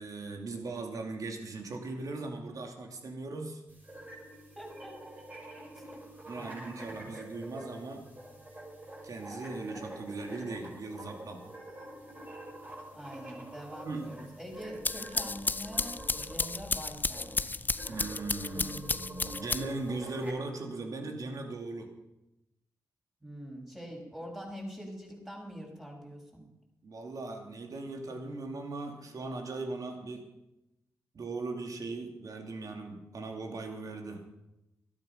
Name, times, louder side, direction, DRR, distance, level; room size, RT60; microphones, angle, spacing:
voice 1, 0.0-3.6 6.3-8.0 9.0-11.4 13.8-14.1 17.9-21.9 26.8-30.2 31.1-34.2, right 3 dB, 60° right, 4 dB, 2.7 m, -39 dB
sound 1, 3.7-20.3, right 1 dB, 25° right, 5.9 m, -47 dB
voice 2, 4.6-5.1 5.7-5.8 6.3-7.2 12.9-17.5 18.5-19.3 23.2-26.5, equal, 5° right, -1 dB, 5.8 m, -44 dB
sound 2, 14.6-19.9, left 3 dB, 30° left, 0.5 m, -33 dB
12.5 x 12.0 x 5.7 m, 0.92 s
supercardioid pair, 50°, 7 cm